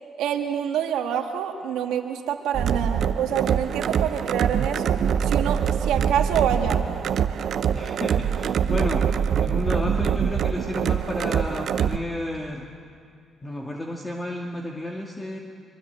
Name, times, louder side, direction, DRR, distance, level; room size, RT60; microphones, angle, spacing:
voice 1, 0.2-6.8, right 9 dB, 90° right, 3 dB, 1.9 m, -27 dB
sound 1, 2.5-12.0, right 8 dB, 65° right, 0.8 m, -24 dB
voice 2, 7.7-9.1 9.4-12.7 13.4-15.4, left 1 dB, 20° left, 0 dB, 2.2 m, -31 dB
24.0 x 24.0 x 8.1 m, 2.3 s
cardioid pair, 90°, 0 cm